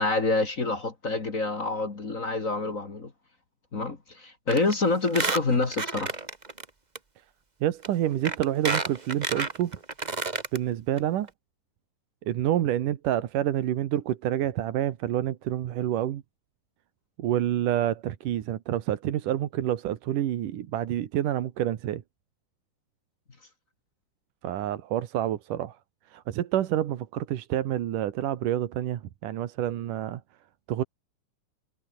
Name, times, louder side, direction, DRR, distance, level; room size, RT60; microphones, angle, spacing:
voice 1, 0.0-3.1 3.7-6.1, left 3 dB, 30° left, 2.1 m, -27 dB
Squeak, 4.5-4.7 5.0-6.6 6.9-7.0 7.8-7.9 8.2-10.6 11.0-11.1 11.3-11.4, right 3 dB, 25° right, 0.8 m, -30 dB
voice 2, 7.6-9.8 10.5-11.3 12.3-16.2 17.2-22.0 24.4-25.8 26.1-30.2 30.7-30.8, right 12 dB, 85° right, 3.0 m, -28 dB
omnidirectional pair, 3.6 m